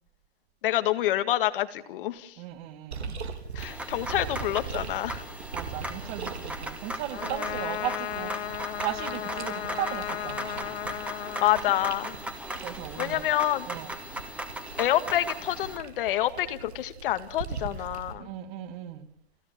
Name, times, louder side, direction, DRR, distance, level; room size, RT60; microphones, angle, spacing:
voice 1, 0.6-2.4 3.5-5.2 11.4-12.1 13.0-13.7 14.8-18.3, left 13 dB, 55° left, 10 dB, 1.9 m, -27 dB
voice 2, 2.4-3.2 5.5-8.4 8.8-10.8 12.6-13.3 13.6-13.9 18.2-19.1, right 12 dB, 35° right, 10 dB, 2.4 m, -37 dB
sound 1, 2.9-18.1, right 5 dB, 90° right, 4.2 m, -41 dB
sound 2, 3.6-15.8, right 1 dB, 5° right, 2.1 m, -38 dB
Trumpet, 7.1-12.4, left 12 dB, 80° left, 2.5 m, -35 dB
30.0 x 12.5 x 7.4 m, 0.67 s
hypercardioid pair, 145°, 32 cm